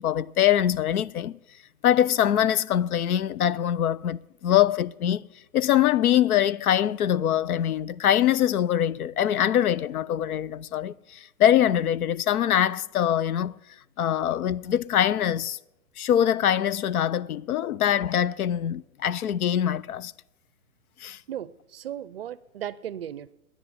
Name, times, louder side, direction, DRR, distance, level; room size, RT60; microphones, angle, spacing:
voice 1, 0.0-1.4 1.8-5.2 5.5-13.6 14.0-15.6 16.0-20.1 21.0-21.2, left 10 dB, 85° left, 0.6 m, -23 dB
voice 2, 21.3-23.3, right 10 dB, 45° right, 0.5 m, -36 dB
10.0 x 9.1 x 9.6 m
hypercardioid pair, 160°, 43 cm